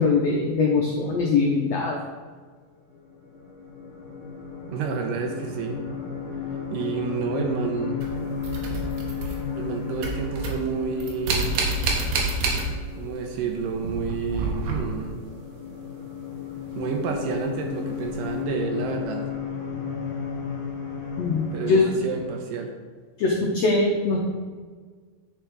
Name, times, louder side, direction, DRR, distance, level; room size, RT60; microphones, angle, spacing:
voice 1, 0.0-2.0 21.2-21.9 23.2-24.2, left 4 dB, 80° left, -1 dB, 1.4 m, -22 dB
sound 1, 2.8-22.3, left 6 dB, 30° left, 2.1 m, -34 dB
voice 2, 4.7-5.8 6.7-8.0 9.3-11.6 13.0-15.2 16.8-19.3 21.5-22.7, right 5 dB, 75° right, 3 dB, 2.3 m, -30 dB
sound 2, 8.0-9.7 9.9-13.1 13.4-15.2 17.1-17.2 18.0-18.1, right 3 dB, 90° right, 3.2 m, -28 dB
8.9 x 5.7 x 4.7 m, 1.5 s
omnidirectional pair, 4.2 m